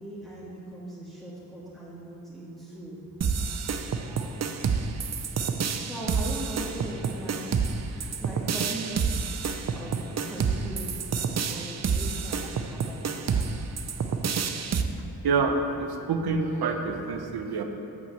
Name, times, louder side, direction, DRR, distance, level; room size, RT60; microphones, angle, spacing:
voice 1, 0.0-3.0 5.8-9.1 9.7-10.9 11.5-13.5, right 1 dB, ahead, -8 dB, 1.8 m, -40 dB
sound 1, 3.2-14.8, right 6 dB, 45° right, 0.7 m, -28 dB
voice 2, 15.2-17.6, right 4 dB, 75° right, 5 dB, 1.0 m, -27 dB
8.3 x 5.7 x 7.5 m, 2.8 s
cardioid pair, 85°, 38 cm